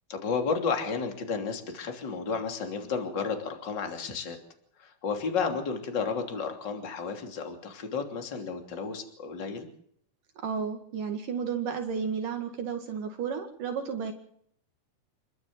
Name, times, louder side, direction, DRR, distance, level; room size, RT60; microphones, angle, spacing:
voice 1, 0.1-4.4 4.8-9.7, left 5 dB, 30° left, 4 dB, 3.3 m, -32 dB
voice 2, 10.4-14.1, right 6 dB, 60° right, 4 dB, 3.5 m, -32 dB
29.5 x 12.5 x 7.8 m, 0.67 s
omnidirectional pair, 4.4 m